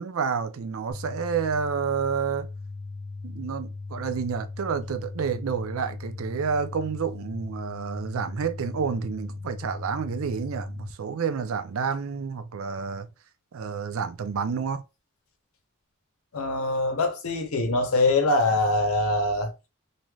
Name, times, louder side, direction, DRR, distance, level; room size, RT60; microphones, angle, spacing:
voice 1, 0.0-2.5 3.2-13.1 13.5-14.8, right 6 dB, 70° right, 0.4 m, -29 dB
sound 1, 0.9-10.9, left 3 dB, 15° left, 0.4 m, -38 dB
voice 2, 16.3-19.5, left 2 dB, 80° left, 0.7 m, -23 dB
3.1 x 2.6 x 2.3 m
head